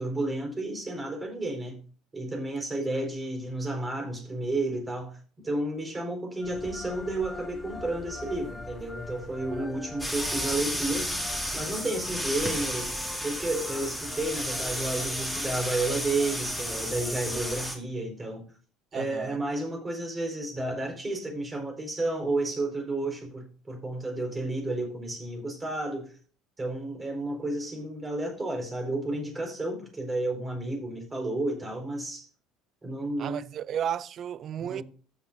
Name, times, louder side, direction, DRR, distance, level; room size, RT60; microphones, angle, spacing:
voice 1, 0.0-1.8 2.1-5.2 5.4-11.2 11.5-12.9 13.2-18.4 18.9-26.1 26.6-32.3 32.8-33.4 34.6-34.8, right 2 dB, 25° right, 4.6 m, -31 dB
sound 1, 6.4-17.7, left 3 dB, 15° left, 1.0 m, -44 dB
sound 2, 10.0-17.7, equal, 5° right, 3.1 m, -32 dB
voice 2, 18.9-19.4 33.2-34.8, right 9 dB, 50° right, 0.4 m, -33 dB
14.5 x 7.2 x 2.7 m
hypercardioid pair, 65°, 0 cm